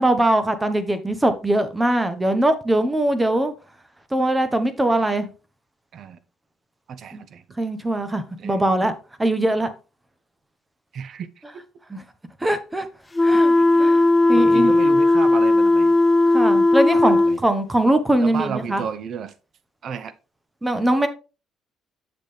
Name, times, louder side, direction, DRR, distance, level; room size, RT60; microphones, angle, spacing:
voice 1, 0.0-3.5 4.1-5.3 7.1-7.2 7.6-9.7 11.9-12.0 12.4-12.9 13.2-13.5 13.8-14.0 14.3-14.8 16.3-18.8 20.6-21.1, right 1 dB, 15° right, 1.1 m, -21 dB
voice 2, 6.9-7.4 8.4-8.8 10.9-11.3 13.3-16.0 16.5-16.6 16.9-17.4 18.2-19.3 19.8-20.1, right 6 dB, 55° right, 0.8 m, -33 dB
sound 1, 13.1-17.4, left 2 dB, 15° left, 0.4 m, -16 dB
7.4 x 6.5 x 3.4 m
cardioid pair, 95°, 0 cm